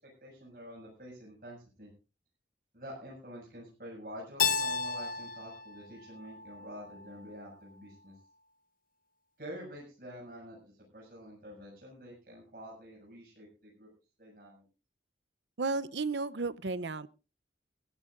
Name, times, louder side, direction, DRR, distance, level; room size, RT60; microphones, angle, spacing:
voice 1, 0.0-1.9 2.7-8.2 9.4-13.9 14.2-14.6, equal, 50° right, 6.9 m, -48 dB
Keyboard (musical), 4.4-7.2, left 6 dB, 50° left, 0.8 m, -33 dB
voice 2, 15.6-17.1, right 3 dB, 80° right, 0.7 m, -33 dB
21.5 x 14.5 x 2.6 m
head